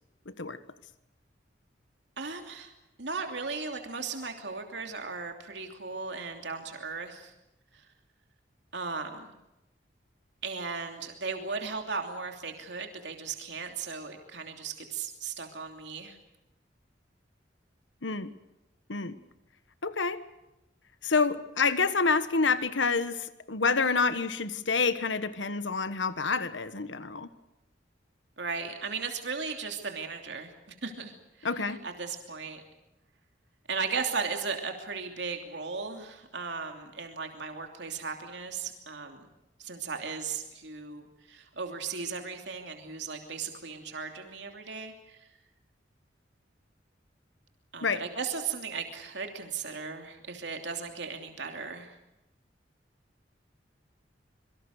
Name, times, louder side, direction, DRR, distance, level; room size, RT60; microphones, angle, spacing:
voice 1, 0.3-0.6 18.0-18.3 18.9-19.2 19.8-20.2 21.0-27.3 31.4-31.8 47.8-48.0, left 4 dB, 85° left, 12 dB, 1.4 m, -28 dB
voice 2, 2.2-2.7 3.0-7.3 7.7-7.8 8.7-9.3 10.4-16.2 28.4-32.6 33.7-39.3 39.6-45.3 47.7-52.0, right 5 dB, 70° right, 4 dB, 3.0 m, -36 dB
26.5 x 24.0 x 6.6 m, 0.92 s
head